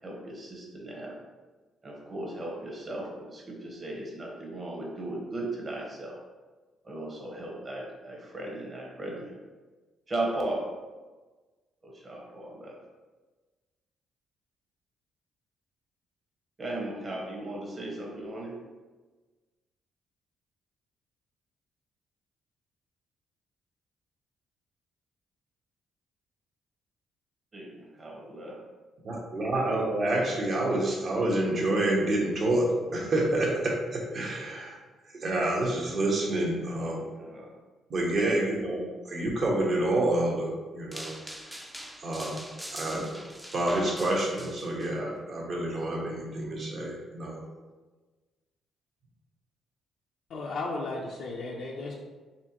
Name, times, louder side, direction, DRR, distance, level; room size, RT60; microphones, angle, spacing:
voice 1, 0.0-1.2 1.8-6.2 6.8-9.4 10.1-10.7 11.8-12.8 16.6-18.6 27.5-28.6 37.1-37.5, right 1 dB, 35° right, -1 dB, 1.2 m, -36 dB
voice 2, 29.0-34.7 35.2-37.1 37.9-38.8 39.1-41.2 42.0-42.3 42.7-43.2 43.5-47.4, right 1 dB, 50° right, -2 dB, 1.1 m, -28 dB
sound 1, 40.9-44.9, right 1 dB, 10° right, 0.5 m, -42 dB
voice 3, 50.3-51.9, left 3 dB, 70° left, -2 dB, 0.5 m, -34 dB
4.3 x 3.5 x 2.9 m, 1.3 s
cardioid pair, 90°, 0 cm